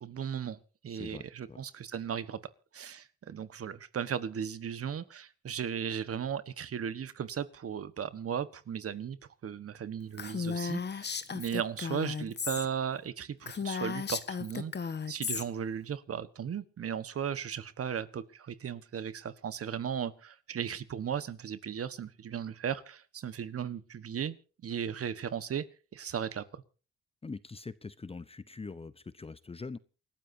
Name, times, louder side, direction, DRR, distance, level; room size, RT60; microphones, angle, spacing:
voice 1, 0.0-0.6 0.8-2.4 2.7-9.2 9.4-24.4 24.6-25.6 25.9-26.6, right 8 dB, 50° right, 14 dB, 1.4 m, -36 dB
voice 2, 0.9-1.2 1.5-1.6 27.2-29.8, left 4 dB, 20° left, 16 dB, 0.8 m, -43 dB
Female speech woman speaking, 10.2-12.7 13.0-13.1 13.4-15.4, left 6 dB, 35° left, 1.5 m, -35 dB
29.0 x 13.0 x 2.8 m, 0.36 s
cardioid pair, 90°, 30 cm